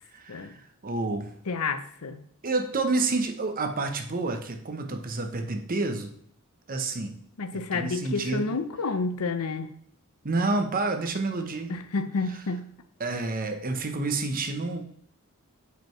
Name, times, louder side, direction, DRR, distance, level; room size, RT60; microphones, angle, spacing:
voice 1, 0.1-0.6 0.8-1.3 2.4-6.1 6.7-7.2 7.5-8.5 10.2-11.7 13.0-14.8, right 3 dB, 40° right, 6 dB, 0.9 m, -29 dB
voice 2, 1.5-2.2 7.4-9.7 11.7-12.7, left 4 dB, 90° left, 10 dB, 0.7 m, -30 dB
9.0 x 5.2 x 3.2 m, 0.67 s
head